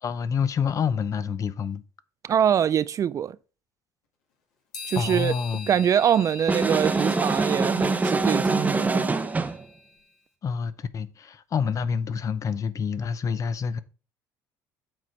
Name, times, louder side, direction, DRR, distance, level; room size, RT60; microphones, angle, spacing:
voice 1, 0.0-1.8 4.9-5.8 10.4-13.8, left 6 dB, 40° left, 0.7 m, -27 dB
voice 2, 2.2-3.4 4.9-5.3 5.7-9.1, right 9 dB, 40° right, 0.3 m, -24 dB
sound 1, 4.7-10.0, left 5 dB, 90° left, 2.2 m, -43 dB
sound 2, 6.5-9.6, right 3 dB, 20° right, 0.8 m, -24 dB
7.6 x 4.3 x 4.6 m
supercardioid pair, 75°, 8 cm